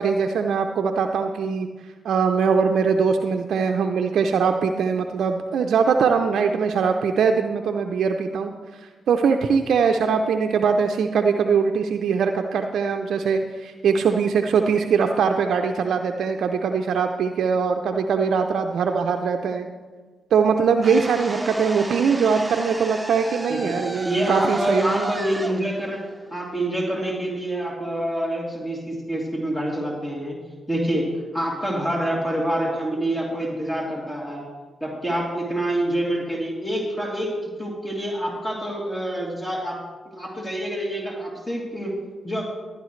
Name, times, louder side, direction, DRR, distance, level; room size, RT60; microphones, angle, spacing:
voice 1, 0.0-1.7 2.0-19.7 20.3-25.2, right 6 dB, 75° right, 4 dB, 0.5 m, -22 dB
sound 1, 20.8-26.9, right 1 dB, 10° right, 1.2 m, -34 dB
voice 2, 24.0-26.0 26.3-30.4 30.7-34.4 34.8-42.4, right 1 dB, 20° left, -3 dB, 2.8 m, -27 dB
16.5 x 9.7 x 3.2 m, 1.4 s
supercardioid pair, 40°, 0 cm